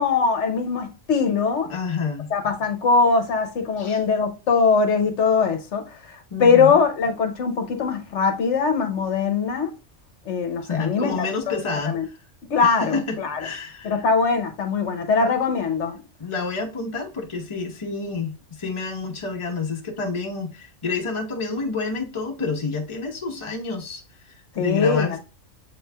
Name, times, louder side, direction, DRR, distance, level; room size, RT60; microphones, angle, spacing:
voice 1, 0.0-1.7 2.3-9.7 10.3-11.6 11.9-12.1 12.5-13.4 13.8-16.0 24.6-25.2, left 5 dB, 70° left, 1.1 m, -21 dB
voice 2, 1.7-2.3 3.8-4.0 6.3-6.8 10.6-12.1 12.6-13.9 16.2-25.2, left 4 dB, 25° left, 0.9 m, -29 dB
7.6 x 3.1 x 2.2 m
omnidirectional pair, 1.3 m